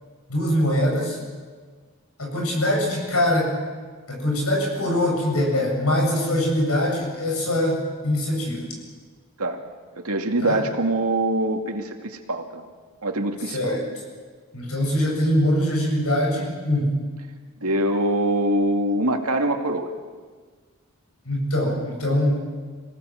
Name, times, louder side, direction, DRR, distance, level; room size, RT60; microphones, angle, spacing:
voice 1, 0.3-1.2 2.2-3.5 4.1-8.6 10.4-10.6 13.5-13.8 14.5-17.0 21.2-22.4, left 1 dB, 75° left, 0 dB, 8.0 m, -23 dB
voice 2, 10.0-12.6 13.0-13.8 17.6-19.9, right 1 dB, 85° right, 4 dB, 2.5 m, -24 dB
26.5 x 18.0 x 7.9 m, 1.5 s
head